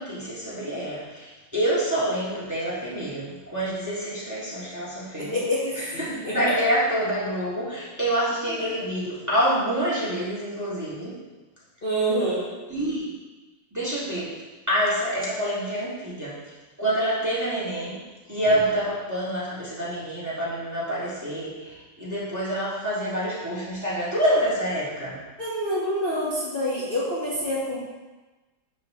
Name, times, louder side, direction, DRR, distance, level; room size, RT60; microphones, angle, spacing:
voice 1, 0.0-5.4 5.7-11.2 12.7-13.2 13.7-14.4 14.7-16.5 16.8-18.0 18.3-25.2, equal, 10° right, -8 dB, 1.7 m, -27 dB
voice 2, 5.2-6.5 8.5-8.6 11.8-12.5 25.4-27.8, equal, 30° left, -9 dB, 1.5 m, -27 dB
12.0 x 4.0 x 3.7 m, 1.2 s
omnidirectional pair, 2.1 m